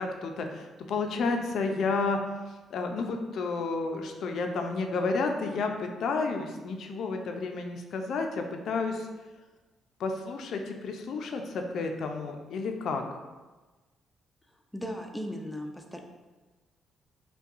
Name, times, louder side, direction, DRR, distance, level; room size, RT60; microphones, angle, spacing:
voice 1, 0.0-2.4 2.7-9.1 10.0-13.2, left 4 dB, 70° left, 4 dB, 0.4 m, -31 dB
voice 2, 14.7-16.0, equal, 5° left, 2 dB, 0.4 m, -37 dB
5.4 x 2.2 x 2.5 m, 1.2 s
cardioid pair, 90°, 0 cm